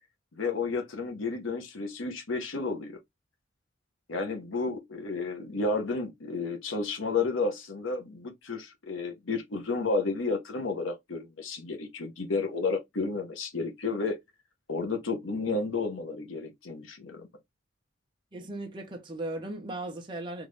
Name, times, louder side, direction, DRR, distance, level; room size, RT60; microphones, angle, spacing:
voice 1, 0.3-3.0 4.1-14.2 14.7-17.3, left 3 dB, 85° left, 1.0 m, -32 dB
voice 2, 18.3-20.5, right 2 dB, 25° right, 0.8 m, -37 dB
3.6 x 2.6 x 3.2 m
head